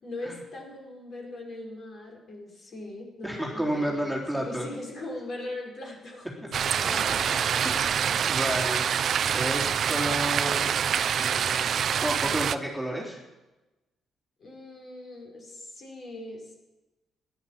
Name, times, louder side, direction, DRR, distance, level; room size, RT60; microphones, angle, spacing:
voice 1, 0.0-6.3 6.6-7.2 7.6-7.7 14.4-16.5, left 2 dB, 50° left, -1 dB, 5.2 m, -40 dB
voice 2, 3.2-4.7 7.6-8.8 9.3-10.8 11.1-13.2, right 1 dB, 5° left, -3 dB, 3.5 m, -31 dB
sound 1, 6.5-12.5, right 8 dB, 60° right, 0.6 m, -26 dB
sound 2, 6.8-9.6, right 2 dB, 20° right, 1.9 m, -42 dB
14.0 x 11.0 x 7.4 m, 1.1 s
cardioid pair, 90°, 0 cm